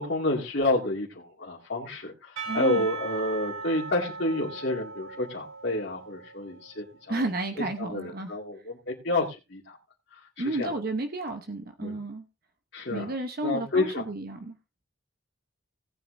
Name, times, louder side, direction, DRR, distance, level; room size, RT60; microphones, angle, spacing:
voice 1, 0.0-7.2 7.8-9.8 10.4-10.7 11.8-12.0 12.7-13.1 13.4-14.1, left 2 dB, 55° left, -4 dB, 2.2 m, -29 dB
Percussion / Church bell, 2.4-6.8, right 4 dB, 75° right, 5.0 m, -38 dB
voice 2, 2.5-2.9 7.1-8.4 10.4-12.2 12.9-14.6, right 2 dB, 45° right, 7 dB, 0.9 m, -32 dB
18.0 x 9.3 x 2.6 m, 0.27 s
head